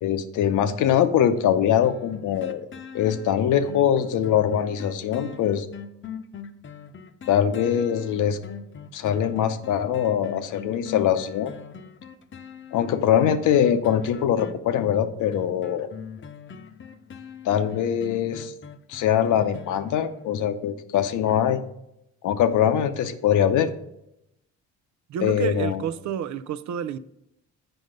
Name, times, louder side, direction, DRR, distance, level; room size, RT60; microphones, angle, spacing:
voice 1, 0.0-2.7 2.9-5.7 7.3-8.4 8.9-11.5 12.7-15.9 17.4-18.5 18.9-21.6 22.2-23.7 25.2-25.8, left 9 dB, 80° left, 0.8 m, -22 dB
sound 1, 1.8-20.5 21.0-21.1, left 7 dB, 40° left, 0.7 m, -42 dB
voice 2, 25.1-27.0, right 9 dB, 70° right, 0.5 m, -30 dB
7.9 x 5.4 x 5.1 m
cardioid pair, 90°, 30 cm